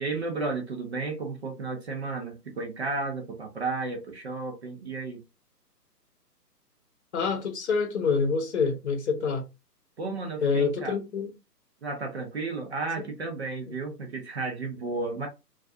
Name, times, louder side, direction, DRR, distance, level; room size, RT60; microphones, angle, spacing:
voice 1, 0.0-5.2 10.0-11.0 11.8-15.3, right 3 dB, 40° right, 0.6 m, -33 dB
voice 2, 7.1-9.4 10.4-11.3 13.0-13.1, left 5 dB, 45° left, 0.8 m, -26 dB
2.3 x 2.3 x 2.5 m
hypercardioid pair, 145°, 49 cm